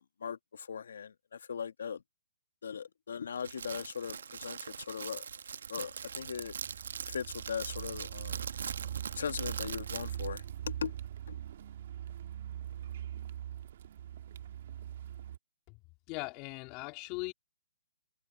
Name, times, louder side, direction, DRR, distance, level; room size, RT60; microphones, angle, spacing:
voice 1, 0.2-1.1 1.5-2.0 2.6-4.6 4.9-5.2 5.7-5.9 6.2-6.5 7.1-8.4 9.2-10.4 10.8-10.9, left 7 dB, 70° left, 1.4 m, -38 dB
Crackle, 3.4-10.5, right 6 dB, 70° right, 1.3 m, -42 dB
Car, 5.9-15.4, right 11 dB, 55° right, 1.5 m, -42 dB
voice 2, 16.1-17.3, left 27 dB, 30° left, 2.9 m, -39 dB
hypercardioid pair, 145°, 0 cm